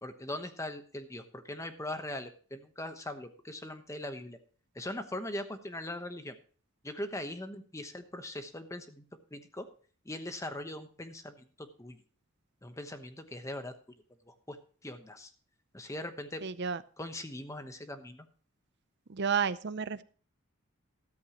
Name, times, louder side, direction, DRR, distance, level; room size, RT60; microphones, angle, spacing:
voice 1, 0.0-4.4 4.7-6.4 6.8-9.0 9.3-9.7 10.0-12.0 12.6-13.7 14.3-14.6 14.8-15.3 15.7-16.4 17.0-18.3, left 1 dB, 15° left, 8 dB, 1.1 m, -40 dB
voice 2, 16.4-16.8 19.1-20.0, right 6 dB, 50° right, 15 dB, 0.6 m, -31 dB
13.5 x 13.5 x 3.0 m, 0.41 s
head